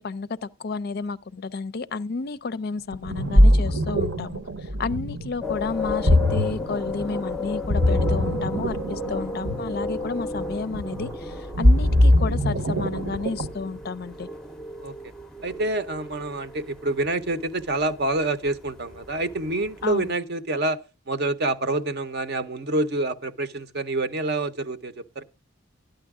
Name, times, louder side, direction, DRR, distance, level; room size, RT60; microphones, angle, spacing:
voice 1, 0.0-14.3 19.8-20.1, left 4 dB, 50° left, 0.4 m, -31 dB
Ocean, 2.9-13.7, left 1 dB, 70° right, 1.1 m, -22 dB
sound 1, 5.4-20.1, left 2 dB, ahead, 0.6 m, -35 dB
voice 2, 15.4-20.8 21.1-25.2, right 2 dB, 50° right, 0.8 m, -27 dB
12.0 x 9.1 x 3.6 m
head